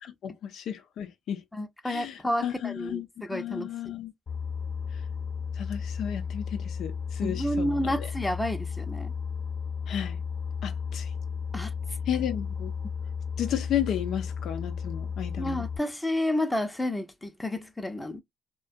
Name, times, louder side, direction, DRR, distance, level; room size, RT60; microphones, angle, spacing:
voice 1, 0.0-1.4 1.8-4.1 4.9-5.0 5.5-8.1 9.9-10.2 10.6-11.1 12.1-12.7 13.4-15.6, left 10 dB, 70° left, 0.4 m, -33 dB
voice 2, 1.5-3.7 7.2-9.1 11.5-11.7 15.4-18.2, left 1 dB, 10° left, 0.6 m, -30 dB
Boat Water vehicle, 4.3-15.8, left 6 dB, 40° left, 0.8 m, -34 dB
2.4 x 2.2 x 2.4 m
supercardioid pair, 75°, 0 cm